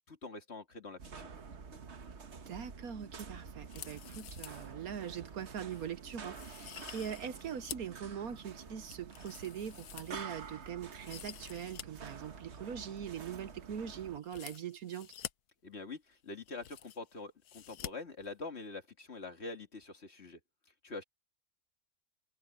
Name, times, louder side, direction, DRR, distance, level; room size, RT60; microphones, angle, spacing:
voice 1, 0.1-1.3 15.6-20.4 20.8-21.0, left 3 dB, 40° left, 2.1 m, -45 dB
sound 1, 1.0-14.2, right 5 dB, 45° right, 1.4 m, -49 dB
voice 2, 2.5-15.1, right 8 dB, 65° right, 1.3 m, -42 dB
sound 2, 3.6-4.7 5.1-5.2 5.7-5.9 6.3-8.0 8.4-10.5 10.9-11.8 12.1-12.2 14.2-15.3 16.1-16.2 16.4-17.1 17.4-17.9 18.2-18.3, left 11 dB, 70° left, 1.3 m, -48 dB
omnidirectional pair, 1.7 m